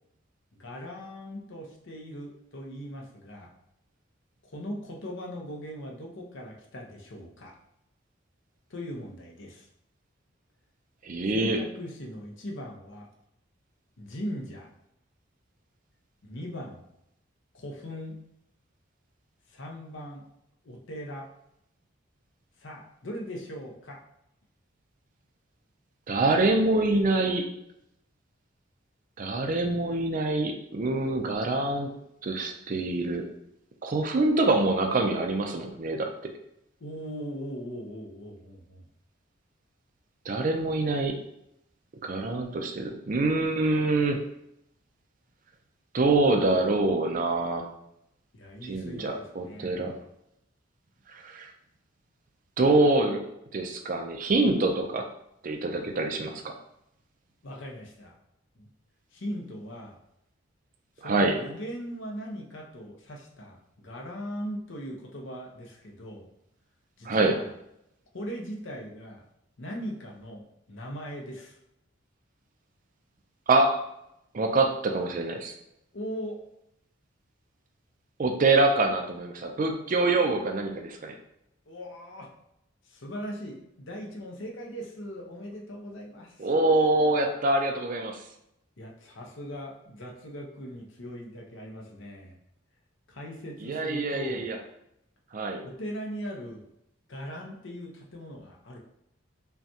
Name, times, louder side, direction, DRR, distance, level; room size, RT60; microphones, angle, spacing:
voice 1, 0.5-3.5 4.4-7.5 8.7-9.7 11.3-13.1 14.0-14.7 16.2-16.8 17.5-18.2 19.5-20.2 20.6-21.3 22.6-24.0 36.8-38.8 48.3-50.0 57.4-58.1 58.6-58.7 59.1-60.0 61.0-66.3 67.0-67.5 68.1-69.2 69.6-71.6 75.9-76.4 81.7-82.3 82.8-86.5 88.8-92.4 93.1-94.5 95.6-96.7 97.1-98.8, equal, 65° left, -1 dB, 0.8 m, -39 dB
voice 2, 11.0-11.6 26.1-27.5 29.2-31.9 32.2-33.2 33.8-36.3 40.3-41.2 42.0-44.2 45.9-47.7 48.6-49.9 51.1-51.5 52.6-53.2 53.5-55.0 55.4-56.4 61.0-61.4 67.1-67.3 73.5-73.8 74.3-75.5 78.2-81.1 86.4-88.2 93.6-94.6 95.3-95.6, right 2 dB, 40° right, 4 dB, 0.4 m, -25 dB
5.6 x 2.3 x 2.8 m, 0.79 s
head